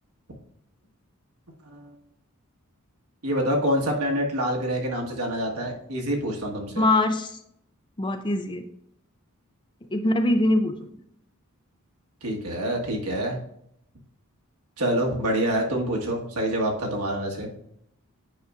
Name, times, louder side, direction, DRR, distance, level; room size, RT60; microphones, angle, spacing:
voice 1, 3.2-6.9 12.2-13.4 14.8-17.5, equal, 80° right, 0 dB, 1.4 m, -26 dB
voice 2, 6.8-7.4 8.0-8.6 9.9-10.8, left 1 dB, 20° left, 7 dB, 0.4 m, -22 dB
8.7 x 5.2 x 2.4 m, 0.73 s
head